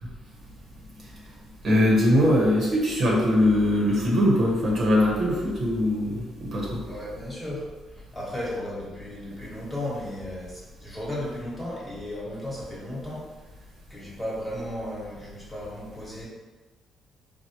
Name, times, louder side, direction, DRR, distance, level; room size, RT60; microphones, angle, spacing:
voice 1, 1.6-6.8, left 1 dB, 55° right, -4 dB, 1.0 m, -21 dB
voice 2, 6.8-13.2 13.9-16.3, left 1 dB, 5° left, -6 dB, 1.2 m, -35 dB
4.4 x 2.0 x 2.9 m, 1.2 s
cardioid pair, 90°, 0 cm